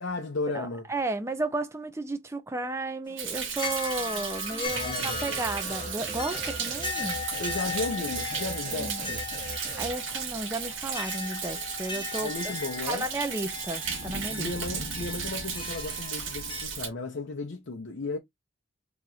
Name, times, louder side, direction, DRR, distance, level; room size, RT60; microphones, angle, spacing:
voice 1, 0.0-0.9 4.7-5.4 7.4-9.3 12.2-13.1 14.4-18.2, left 3 dB, 65° left, 0.6 m, -34 dB
voice 2, 0.5-7.2 8.8-9.1 9.8-12.5 12.9-14.5, right 2 dB, 15° right, 0.4 m, -33 dB
sound 1, 3.1-16.6, left 4 dB, 25° left, 0.8 m, -38 dB
Thunder, 3.2-16.9, right 6 dB, 75° right, 1.0 m, -35 dB
sound 2, 4.7-9.9, right 1 dB, 40° right, 1.1 m, -39 dB
2.9 x 2.4 x 3.9 m
head